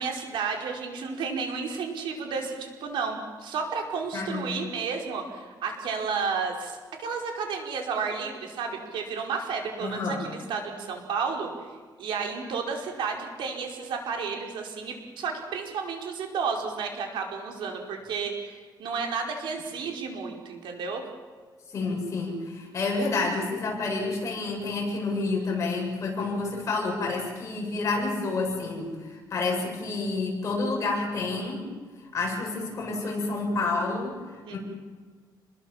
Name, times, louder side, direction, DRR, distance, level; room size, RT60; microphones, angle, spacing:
voice 1, 0.0-11.5 12.0-21.0 34.4-34.6, right 5 dB, 85° right, 2 dB, 5.1 m, -32 dB
voice 2, 4.1-4.7 9.8-10.2 21.7-31.7 32.1-34.6, left 3 dB, 40° left, 0 dB, 7.6 m, -29 dB
29.5 x 21.0 x 7.5 m, 1.5 s
cardioid pair, 170°, 8 cm